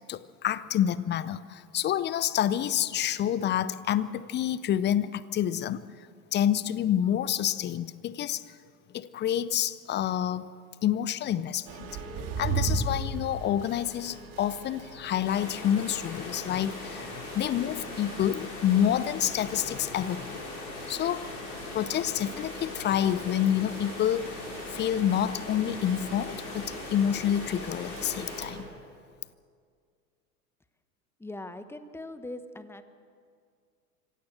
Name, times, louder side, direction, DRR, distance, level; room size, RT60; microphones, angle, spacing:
voice 1, 0.1-5.8 6.3-8.4 8.9-10.5 10.8-11.9 12.4-20.4 20.9-21.3 21.7-24.4 24.7-28.7, left 10 dB, 25° left, 18 dB, 0.6 m, -28 dB
sound 1, 11.7-28.6, right 3 dB, 45° right, 3.8 m, -39 dB
sound 2, 15.2-28.5, left 3 dB, 75° left, 5.2 m, -40 dB
voice 2, 31.2-32.8, left 2 dB, 5° left, 11 dB, 1.1 m, -40 dB
25.5 x 16.5 x 6.6 m, 2.2 s
figure-of-eight pair, 85°, 45 cm